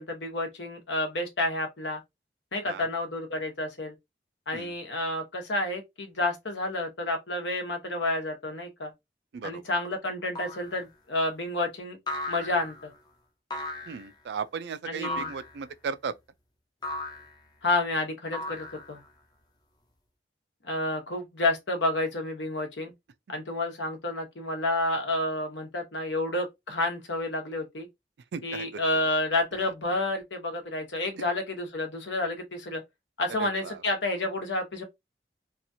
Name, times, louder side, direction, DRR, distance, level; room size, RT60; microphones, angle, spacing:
voice 1, 0.0-2.0 2.5-3.9 4.5-8.9 9.4-12.0 12.3-12.9 14.9-15.3 17.6-19.0 20.6-22.9 23.3-27.9 28.4-32.8 33.2-34.8, left 2 dB, 85° left, 1.0 m, -30 dB
sound 1, 10.4-10.8 12.1-12.8 13.5-14.1 15.0-15.6 16.8-17.3 18.3-19.1, left 1 dB, 20° left, 0.5 m, -36 dB
voice 2, 13.9-16.1 28.3-28.8 29.6-29.7 33.4-33.8, right 6 dB, 75° right, 0.3 m, -36 dB
2.9 x 2.4 x 2.6 m
head